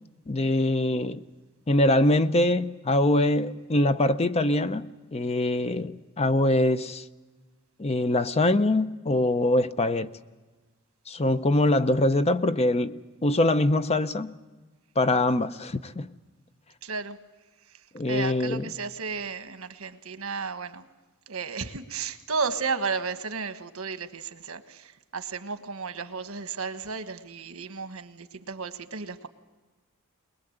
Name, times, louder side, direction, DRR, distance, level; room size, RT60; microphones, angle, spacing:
voice 1, 0.3-1.2 1.7-7.0 7.8-10.1 11.1-14.3 15.0-16.1 17.9-18.7, left 1 dB, 30° left, 0.7 m, -23 dB
voice 2, 16.8-17.2 18.1-20.8 21.3-29.3, right 5 dB, 80° right, 1.3 m, -33 dB
22.0 x 21.0 x 7.9 m
head